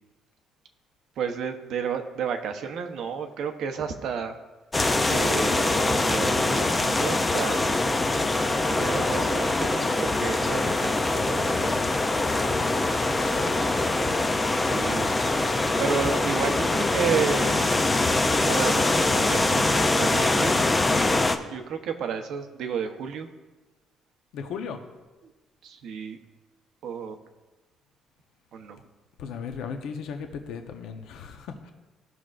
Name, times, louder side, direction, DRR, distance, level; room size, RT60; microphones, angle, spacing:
voice 1, 1.2-4.4 5.0-7.8 8.7-11.8 14.7-15.5 15.8-17.8 18.5-21.1 21.5-23.3 25.2-25.3 25.6-26.2 26.8-27.2 28.5-28.8, right 6 dB, 60° right, 6 dB, 0.8 m, -32 dB
sound 1, 4.7-21.4, left 2 dB, 15° left, 0.4 m, -23 dB
voice 2, 13.1-14.2 24.3-24.8 29.2-31.7, left 6 dB, 75° left, 5 dB, 0.8 m, -37 dB
17.0 x 6.3 x 2.5 m, 1.2 s
cardioid pair, 180°, 0 cm